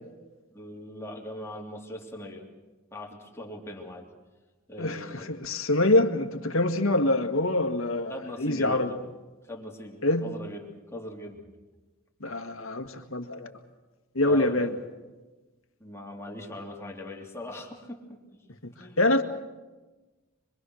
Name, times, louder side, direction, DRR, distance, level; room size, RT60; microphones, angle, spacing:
voice 1, 0.5-2.4 2.9-4.1 4.7-5.3 8.1-9.0 9.4-11.4 14.2-14.7 15.8-18.4 18.8-19.0, left 1 dB, 15° left, -1 dB, 3.2 m, -40 dB
voice 2, 4.8-8.9 10.0-10.3 12.2-13.5 14.2-14.8 18.6-18.7 19.0-19.2, left 2 dB, 80° left, 5 dB, 1.8 m, -25 dB
25.5 x 23.0 x 6.4 m, 1.2 s
head